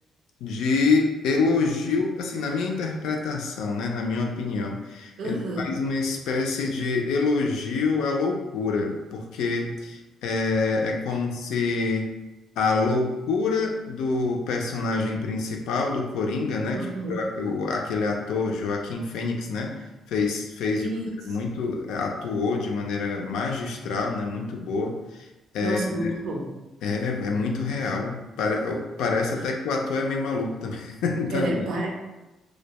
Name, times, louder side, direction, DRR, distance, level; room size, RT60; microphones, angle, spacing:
voice 1, 0.4-12.1 12.6-19.8 20.1-20.9 21.3-25.3 25.5-26.1 26.8-31.6, left 4 dB, 85° left, 1 dB, 0.3 m, -26 dB
voice 2, 5.2-5.8 16.7-17.2 20.7-21.4 25.6-26.6 27.8-27.9 31.3-31.9, right 2 dB, 80° right, 0 dB, 0.5 m, -30 dB
2.1 x 2.1 x 2.8 m, 1.1 s
cardioid pair, 90°, 0 cm